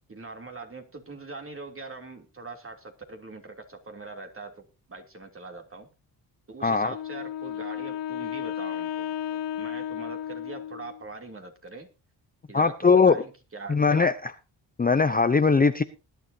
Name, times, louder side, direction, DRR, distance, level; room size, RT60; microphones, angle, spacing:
voice 1, 0.1-5.9 6.5-11.9 12.5-14.1, right 3 dB, 30° right, 4 dB, 3.1 m, -42 dB
voice 2, 6.6-6.9 12.5-13.2 13.7-14.3 14.8-15.8, left 4 dB, 20° left, 11 dB, 0.7 m, -20 dB
Wind instrument woodwind instrument, 6.8-11.1, left 10 dB, 85° left, 1.0 m, -33 dB
20.0 x 10.5 x 2.8 m, 0.30 s
cardioid pair, 70°, 43 cm